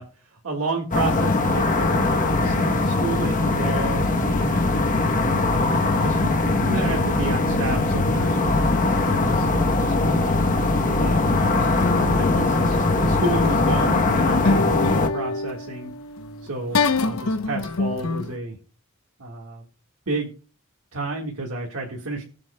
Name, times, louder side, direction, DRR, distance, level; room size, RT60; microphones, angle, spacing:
voice 1, 0.0-4.7 5.1-5.7 6.0-10.4 11.0-11.7 12.0-15.9 16.4-18.6 19.2-19.6 20.1-20.3 20.9-22.2, right 2 dB, 85° right, -1 dB, 1.6 m, -31 dB
sound 1, 0.9-15.1, left 2 dB, 35° left, 0.9 m, -21 dB
sound 2, 11.6-18.3, left 3 dB, 75° left, 0.7 m, -27 dB
19.5 x 7.6 x 2.2 m, 0.37 s
head